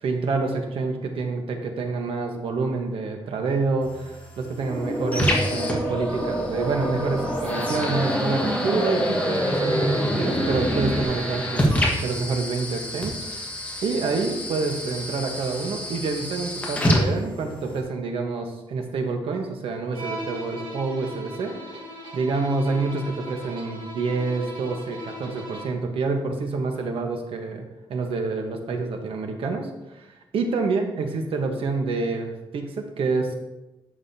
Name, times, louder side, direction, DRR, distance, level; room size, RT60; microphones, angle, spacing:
voice 1, 0.0-21.6 22.1-27.6 27.9-30.1 30.3-33.3, right 4 dB, 90° right, 4 dB, 1.1 m, -27 dB
sound 1, 3.8-17.8, equal, 15° left, 1.4 m, -29 dB
sound 2, 4.5-11.0, equal, 10° right, 1.4 m, -26 dB
Bowed string instrument, 19.9-25.9, equal, 60° right, 1.7 m, -38 dB
11.0 x 6.3 x 2.8 m, 1.0 s
wide cardioid pair, 155°, 9 cm